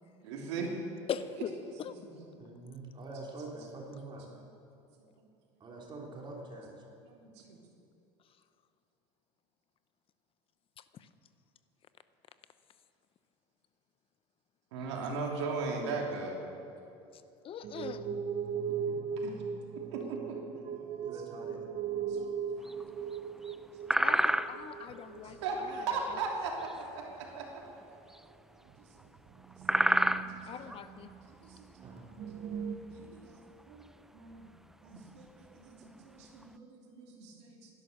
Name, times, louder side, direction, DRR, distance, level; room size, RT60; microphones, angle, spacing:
voice 1, 0.2-0.7 2.1-2.2 4.3-4.4 7.0-7.6 14.7-16.4 18.9-19.4 19.9-20.6 21.0-21.1 22.1-22.2 23.0-23.1 23.9-24.0 25.2-27.6 28.8-28.9 29.7-30.5 31.4-32.5 32.9-33.8 34.1-34.5 34.8-37.7, right 4 dB, 85° right, 0 dB, 3.0 m, -39 dB
voice 2, 1.1-1.5 1.8-1.9 10.9-11.1 14.8-14.9 17.4-18.2 24.0-26.2 30.5-31.1, left 8 dB, 40° left, 12 dB, 0.8 m, -41 dB
voice 3, 2.4-4.3 5.6-6.8 21.0-21.6 31.8-32.1, right 2 dB, 35° right, -1 dB, 3.1 m, -45 dB
sound 1, 17.6-26.1 26.5-27.0 27.4-27.5 27.9-28.0 29.0-31.2 31.5-31.6 31.8-32.8, right 7 dB, 50° right, 1.2 m, -39 dB
sound 2, 22.6-23.2 23.4-23.5 23.9-24.8 25.4-26.8 27.0-27.4 27.7-27.8 28.1-28.2 29.0-29.2 29.4-30.9 31.2-31.6 32.1-33.2 33.6-33.9 34.3-34.4 34.7-35.1 35.8-35.9 36.2-36.4, right 1 dB, 5° right, 0.5 m, -30 dB
19.0 x 11.0 x 6.6 m, 2.6 s
supercardioid pair, 100°, 14 cm